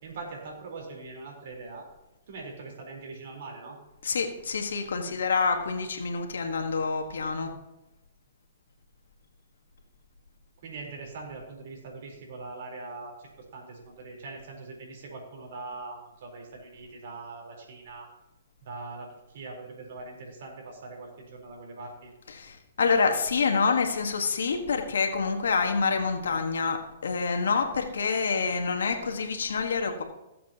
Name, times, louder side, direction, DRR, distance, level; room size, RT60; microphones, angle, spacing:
voice 1, 0.0-1.9 2.3-3.8 10.6-18.1 18.6-22.1, right 3 dB, 65° right, 0 dB, 3.8 m, -42 dB
voice 2, 4.0-7.5 22.3-30.0, left 5 dB, 80° left, 5 dB, 1.4 m, -27 dB
18.5 x 7.4 x 2.9 m, 0.99 s
hypercardioid pair, 130°, 0 cm